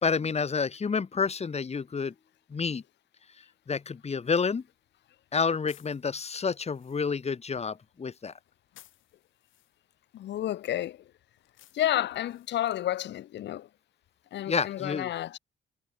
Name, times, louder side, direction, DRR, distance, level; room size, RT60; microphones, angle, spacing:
voice 1, 0.0-2.1 2.5-2.8 3.7-4.6 5.3-8.3 14.5-15.1, left 5 dB, 30° left, 1.6 m, -29 dB
sound 1, 4.2-12.9, left 13 dB, 85° left, 7.4 m, -62 dB
voice 2, 10.1-11.0 11.7-13.7 14.3-15.4, left 13 dB, 60° left, 0.6 m, -30 dB
cardioid pair, 90°, 20 cm